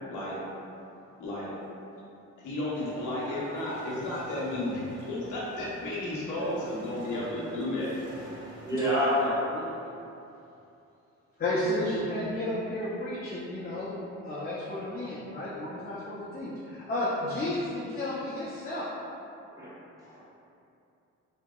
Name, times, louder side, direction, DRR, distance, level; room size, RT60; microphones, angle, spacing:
voice 1, 2.4-7.9 8.7-9.3, left 1 dB, 85° left, -6 dB, 0.8 m, -33 dB
sound 1, 2.7-9.3, right 1 dB, 55° right, 0.6 m, -49 dB
voice 2, 6.8-7.2 8.6-9.6 19.5-20.2, equal, 10° right, -10 dB, 1.0 m, -30 dB
voice 3, 11.4-13.9 14.2-18.9, left 1 dB, 30° left, -8 dB, 0.5 m, -32 dB
2.8 x 2.7 x 2.2 m, 2.7 s
cardioid pair, 90°, 30 cm